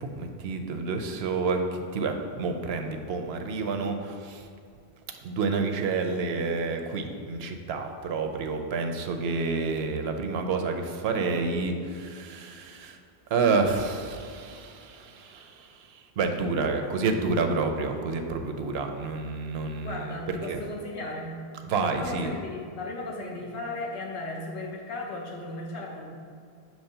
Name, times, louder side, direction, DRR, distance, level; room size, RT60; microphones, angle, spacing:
voice 1, 0.0-1.6 1.9-4.5 5.2-13.0 13.3-20.6 21.6-22.3, right 4 dB, 70° right, 5 dB, 0.8 m, -29 dB
voice 2, 19.8-21.3 21.8-26.0, left 2 dB, 75° left, -2 dB, 1.3 m, -36 dB
7.1 x 3.1 x 5.5 m, 2.3 s
omnidirectional pair, 1.1 m